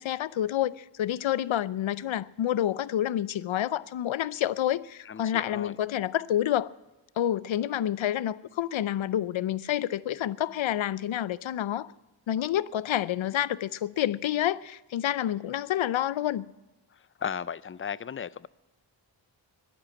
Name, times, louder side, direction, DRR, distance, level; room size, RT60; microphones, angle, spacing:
voice 1, 0.0-6.7 7.2-11.9 12.3-16.5, left 11 dB, 80° left, 0.6 m, -28 dB
voice 2, 5.1-5.7 16.9-18.5, left 7 dB, 30° left, 0.4 m, -36 dB
13.0 x 12.0 x 8.3 m
wide cardioid pair, 75°, 47 cm